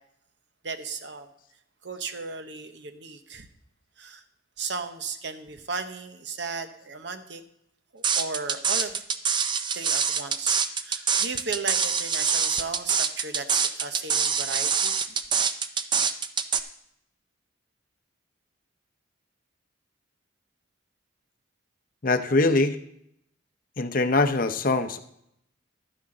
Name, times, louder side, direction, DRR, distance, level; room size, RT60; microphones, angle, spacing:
voice 1, 0.6-1.3 1.8-3.5 4.0-4.2 4.6-7.4 7.9-9.0 9.7-14.9, right 4 dB, 60° right, 9 dB, 0.9 m, -35 dB
sound 1, 8.0-16.6, right 6 dB, 25° right, 0.4 m, -25 dB
voice 2, 22.0-22.8 23.8-25.0, left 2 dB, 45° left, 9 dB, 0.7 m, -22 dB
12.0 x 10.0 x 3.8 m, 0.74 s
head